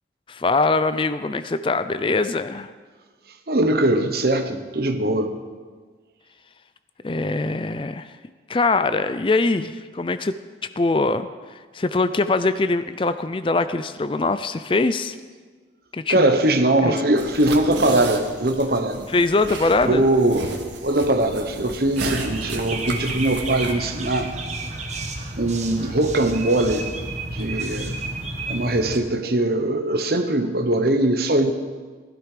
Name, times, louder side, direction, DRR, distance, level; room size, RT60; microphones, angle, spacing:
voice 1, 0.3-2.7 7.0-8.1 8.5-10.4 10.8-15.2 15.9-16.3 16.8-17.0 19.1-20.1, left 3 dB, 30° left, 12 dB, 0.4 m, -22 dB
voice 2, 3.5-5.3 16.1-19.1 19.9-24.3 25.3-26.9 27.3-27.9 28.5-31.5, right 1 dB, 55° right, 7 dB, 1.1 m, -21 dB
sound 1, 17.2-23.7, right 3 dB, 75° right, 1.6 m, -34 dB
sound 2, 22.0-29.0, right 2 dB, 40° right, 1.4 m, -31 dB
17.0 x 12.0 x 5.1 m, 1.5 s
head